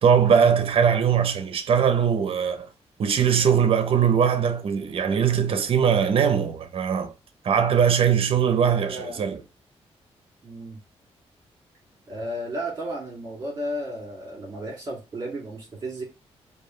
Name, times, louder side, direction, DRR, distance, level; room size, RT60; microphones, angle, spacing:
voice 1, 0.0-2.7 3.0-7.1 7.4-9.4, right 7 dB, 55° right, 0.7 m, -21 dB
voice 2, 8.9-9.2 10.4-10.8 12.1-16.0, right 1 dB, 35° right, 2.5 m, -33 dB
4.7 x 2.7 x 3.1 m
cardioid pair, 110°, 11 cm